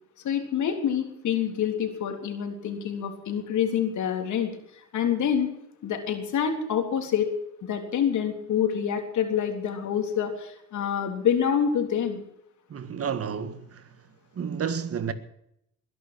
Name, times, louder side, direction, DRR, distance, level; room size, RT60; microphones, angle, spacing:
voice 1, 0.2-4.5 4.9-5.5 5.8-7.3 7.6-12.2, left 8 dB, 75° left, 3.6 m, -26 dB
voice 2, 12.7-13.9 14.4-15.1, right 7 dB, 50° right, 1.8 m, -31 dB
21.0 x 11.0 x 6.1 m
cardioid pair, 90°, 30 cm